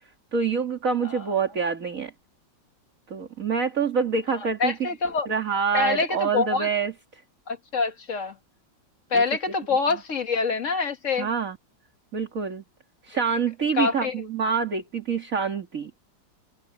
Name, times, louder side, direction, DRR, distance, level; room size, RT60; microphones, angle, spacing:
voice 1, 0.3-2.1 3.1-4.9 5.3-7.2 9.1-9.2 11.2-11.6 12.1-12.6 13.0-15.9, right 5 dB, 45° right, 2.8 m, -26 dB
voice 2, 4.3-5.3 5.7-6.7 7.5-8.4 9.1-11.3 13.8-14.1, left 4 dB, 45° left, 1.7 m, -26 dB
open air
omnidirectional pair, 2.1 m